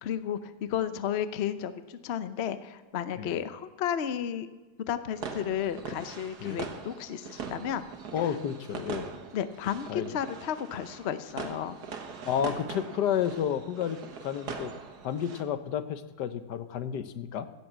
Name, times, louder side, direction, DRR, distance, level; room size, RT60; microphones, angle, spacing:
voice 1, 0.0-4.5 4.9-7.8 8.2-8.3 9.3-11.8, left 9 dB, 55° left, 12 dB, 0.7 m, -33 dB
sound 1, 5.2-15.4, right 5 dB, 70° right, 1.8 m, -42 dB
voice 2, 8.1-9.1 9.9-10.1 12.2-14.7 15.0-17.5, left 9 dB, 80° left, 11 dB, 1.4 m, -31 dB
16.0 x 7.5 x 7.4 m, 1.3 s
omnidirectional pair, 1.8 m